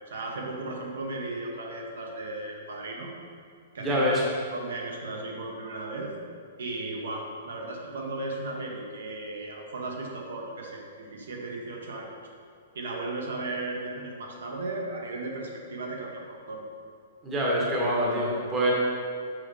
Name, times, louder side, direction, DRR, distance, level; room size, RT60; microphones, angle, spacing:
voice 1, 0.1-3.1 3.7-4.2 4.5-6.2 6.6-12.1 12.7-16.6, right 2 dB, 85° right, 1 dB, 1.0 m, -36 dB
voice 2, 3.8-4.2 17.2-18.7, equal, 15° right, -4 dB, 0.8 m, -25 dB
6.2 x 4.7 x 3.3 m, 2.3 s
hypercardioid pair, 175°, 0 cm